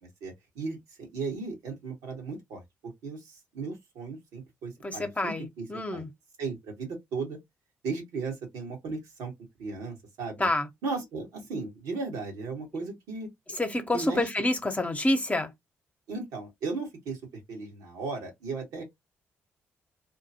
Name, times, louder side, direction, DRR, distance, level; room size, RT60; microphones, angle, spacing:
voice 1, 0.2-2.6 3.0-5.7 5.9-6.1 6.4-7.4 7.8-9.3 9.6-10.5 10.8-13.3 13.9-14.3 16.1-17.2 17.5-18.8, right 4 dB, 80° right, 2.1 m, -36 dB
voice 2, 4.8-6.1 10.4-10.7 13.5-15.5, left 1 dB, 25° left, 1.2 m, -28 dB
3.6 x 2.6 x 2.9 m
hypercardioid pair, 50°, 6 cm